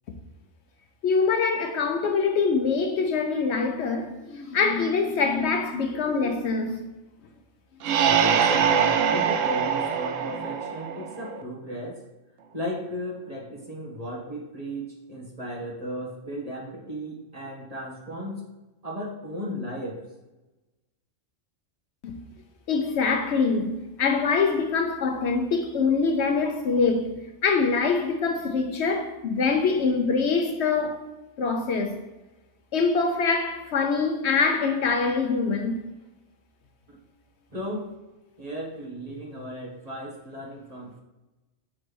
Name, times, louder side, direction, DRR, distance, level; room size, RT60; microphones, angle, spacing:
voice 1, 1.0-6.8 22.0-22.2 22.7-27.1 27.4-31.0 31.4-32.0 32.7-35.8, left 4 dB, 65° left, 0.8 m, -24 dB
sound 1, 7.8-11.4, right 7 dB, 80° right, 0.9 m, -23 dB
voice 2, 8.0-12.0 12.5-18.4 18.8-20.0 37.5-37.9 38.4-41.0, equal, 30° right, 1.3 m, -35 dB
6.1 x 3.2 x 5.0 m
omnidirectional pair, 1.3 m